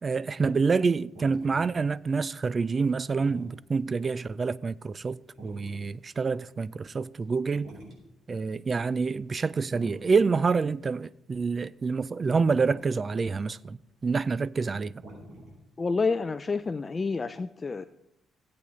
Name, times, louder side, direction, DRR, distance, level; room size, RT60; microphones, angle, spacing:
voice 1, 0.0-7.7 8.3-14.9, right 4 dB, 35° right, 0.3 m, -27 dB
sound 1, 1.0-6.6 7.1-17.1, right 1 dB, 60° right, 4.8 m, -50 dB
voice 2, 15.8-17.8, left 4 dB, 30° left, 0.4 m, -29 dB
16.5 x 8.4 x 3.2 m
cardioid pair, 90°, 0 cm